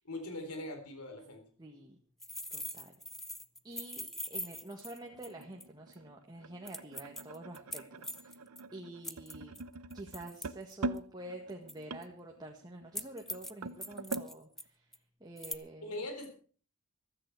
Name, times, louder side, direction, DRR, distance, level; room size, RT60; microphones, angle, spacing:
voice 1, 0.0-1.4 15.8-16.3, left 1 dB, 85° left, 5 dB, 3.8 m, -41 dB
voice 2, 1.6-1.9 2.5-2.9 3.6-4.0 4.3-8.4 8.7-9.6 9.9-14.9 15.2-15.9, right 1 dB, 20° right, 1 dB, 1.6 m, -48 dB
sound 1, 2.2-5.6 5.9-6.0 6.7-8.6 9.0-11.0 11.7-12.0 13.0-13.5 13.8-14.6 14.9-15.0 15.4-15.6, equal, ahead, 0.7 m, -42 dB
sound 2, 4.6-14.3, right 2 dB, 80° right, 0.8 m, -44 dB
15.0 x 13.5 x 4.7 m, 0.41 s
head